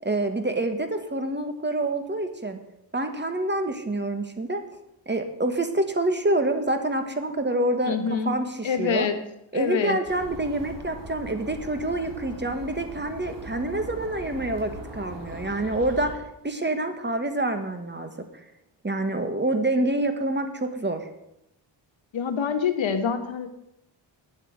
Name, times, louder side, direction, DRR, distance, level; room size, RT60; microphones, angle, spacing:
voice 1, 0.0-2.6 2.9-4.6 5.1-7.9 8.3-9.1 9.5-18.1 18.8-21.1, right 1 dB, 25° right, 7 dB, 1.6 m, -27 dB
voice 2, 7.8-8.3 8.6-9.2 9.5-10.0 22.1-23.5, left 7 dB, 80° left, 7 dB, 1.4 m, -26 dB
sound 1, 10.0-16.1, right 2 dB, 60° right, 4.2 m, -40 dB
9.6 x 7.7 x 7.8 m, 0.84 s
cardioid pair, 65°, 46 cm